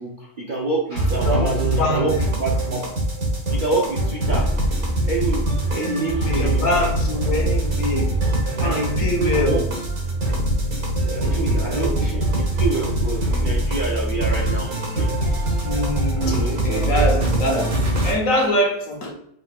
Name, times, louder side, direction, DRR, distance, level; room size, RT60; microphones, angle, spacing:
voice 1, 0.0-2.1 2.4-2.8 3.5-4.6 5.1-6.8 8.6-8.9 9.3-9.6 11.0-14.7 15.0-15.1 16.2-17.3, right 3 dB, 45° right, -4 dB, 0.6 m, -27 dB
sound 1, 0.9-18.1, right 1 dB, 70° right, 1.7 m, -23 dB
voice 2, 1.2-2.1 5.7-8.2 8.6-9.7 10.3-10.4 11.2-12.0 15.6-19.1, left 1 dB, 60° left, 0 dB, 1.2 m, -24 dB
5.5 x 3.6 x 2.4 m, 0.73 s
omnidirectional pair, 1.6 m